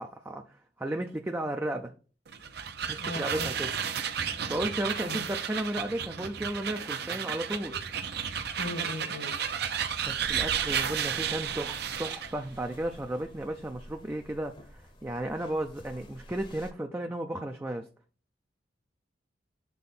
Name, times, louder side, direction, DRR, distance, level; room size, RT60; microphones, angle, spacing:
voice 1, 0.0-1.9 2.9-3.7 4.5-7.7 10.1-17.9, right 1 dB, 10° right, 4 dB, 0.4 m, -34 dB
sound 1, 2.3-12.4, right 8 dB, 60° right, 0.7 m, -32 dB
voice 2, 3.0-3.5 5.0-5.2 7.7-7.8 8.6-9.3, left 2 dB, 80° left, 5 dB, 1.9 m, -38 dB
sound 2, 10.0-16.7, equal, 25° left, 0.8 m, -49 dB
7.0 x 3.7 x 4.2 m, 0.38 s
head